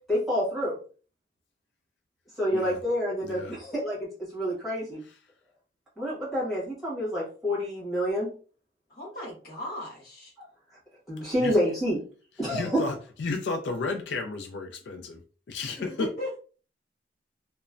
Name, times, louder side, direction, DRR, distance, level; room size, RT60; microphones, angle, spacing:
voice 1, 0.1-0.8 2.4-5.0 6.0-8.3 10.4-10.5 11.1-12.0 12.4-12.8, equal, ahead, -8 dB, 1.4 m, -28 dB
voice 2, 3.2-3.6 11.2-11.6 12.5-15.2 15.5-16.1, left 3 dB, 80° left, 5 dB, 0.4 m, -33 dB
voice 3, 8.9-10.3 15.8-16.4, left 1 dB, 55° left, -4 dB, 1.3 m, -37 dB
3.0 x 2.1 x 2.4 m, 0.39 s
head